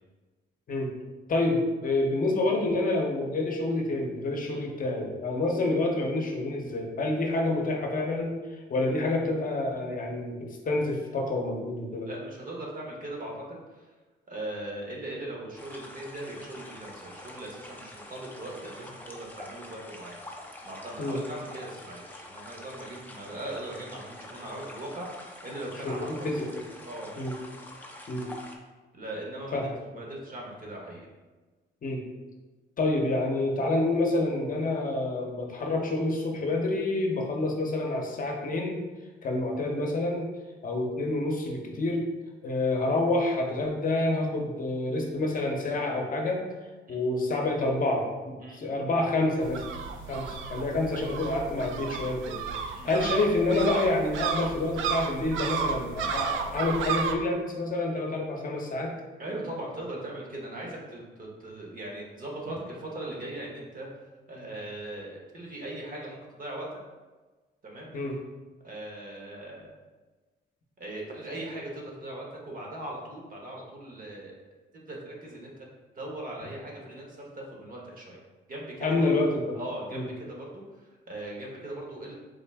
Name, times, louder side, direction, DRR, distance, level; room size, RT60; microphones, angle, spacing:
voice 1, 1.3-8.4 8.7-12.1 21.0-21.2 25.8-26.7 27.2-27.3 28.1-28.3 29.5-29.6 31.8-32.0 32.8-38.8 39.2-40.3 40.6-42.1 42.4-46.5 46.9-49.6 50.1-52.4 52.7-58.9 67.9-68.2 78.8-79.6 79.9-80.1, left 2 dB, 45° left, 1 dB, 0.7 m, -28 dB
voice 2, 12.0-13.9 14.3-26.3 26.9-27.1 28.9-29.6 29.9-31.1 46.9-47.1 48.4-48.6 52.7-53.0 59.2-63.9 64.3-66.7 67.6-67.9 68.6-69.7 70.8-74.3 74.7-75.7 76.0-78.2 78.5-79.1 79.5-82.2, right 1 dB, 45° right, -2 dB, 1.0 m, -39 dB
sound 1, 15.6-28.6, left 1 dB, 10° left, 0.5 m, -46 dB
sound 2, 49.4-57.2, right 6 dB, 80° right, 0.4 m, -33 dB
3.8 x 2.5 x 3.4 m, 1.3 s
cardioid pair, 90°, 20 cm